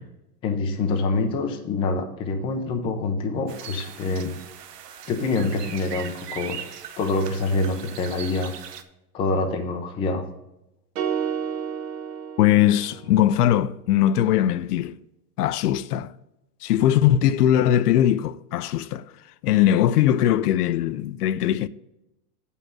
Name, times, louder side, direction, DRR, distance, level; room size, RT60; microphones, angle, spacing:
voice 1, 0.4-4.4 5.1-6.6 7.0-8.5 9.1-10.2, left 3 dB, 10° left, 0.5 m, -26 dB
sound 1, 3.5-8.8, right 9 dB, 85° right, 1.1 m, -39 dB
sound 2, 11.0-13.3, right 8 dB, 60° right, 1.4 m, -30 dB
voice 2, 12.4-15.0 15.4-16.1 16.6-19.0 19.4-21.7, left 11 dB, 75° left, 0.6 m, -20 dB
7.4 x 5.5 x 6.4 m
supercardioid pair, 150°, 47 cm